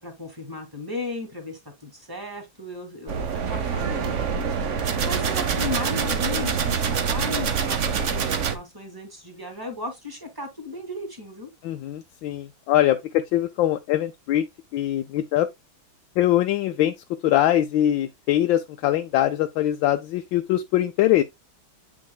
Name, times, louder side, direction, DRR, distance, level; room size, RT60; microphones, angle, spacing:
voice 1, 0.0-4.1 5.0-11.5, left 3 dB, 10° right, 2.3 m, -35 dB
sound 1, 3.1-8.5, right 6 dB, 55° right, 0.8 m, -25 dB
voice 2, 11.6-14.5 14.7-15.5 16.2-16.9 17.2-21.2, left 13 dB, 75° left, 1.2 m, -22 dB
8.5 x 6.1 x 2.2 m
omnidirectional pair, 2.4 m